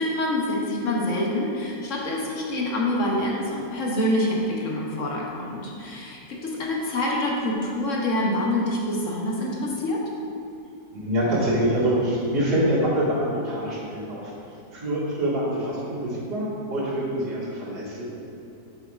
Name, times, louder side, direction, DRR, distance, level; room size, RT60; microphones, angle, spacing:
voice 1, 0.0-10.0, left 1 dB, 55° left, -2 dB, 1.1 m, -26 dB
voice 2, 10.9-14.3 14.7-18.0, right 1 dB, 80° right, -9 dB, 2.4 m, -25 dB
9.4 x 5.9 x 2.4 m, 2.6 s
omnidirectional pair, 1.7 m